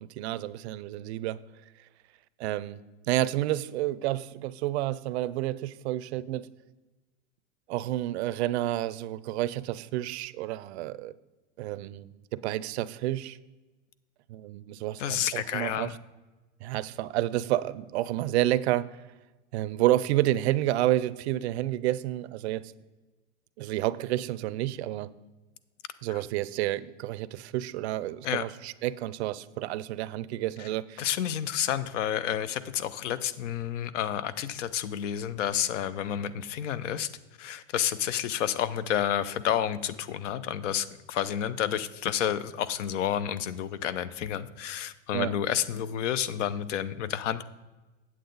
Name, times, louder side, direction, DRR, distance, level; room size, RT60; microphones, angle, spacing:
voice 1, 0.0-1.4 2.4-2.8 3.1-6.5 7.7-11.1 11.6-13.4 14.3-16.0 16.6-18.9 19.5-22.7 23.6-25.1 26.0-31.0 45.1-45.3, right 15 dB, 60° right, 0.5 m, -30 dB
voice 2, 15.0-15.9 26.1-26.2 28.2-28.4 31.0-37.1 37.4-47.4, left 10 dB, 75° left, 0.7 m, -30 dB
8.7 x 7.7 x 3.9 m
supercardioid pair, 135°, 37 cm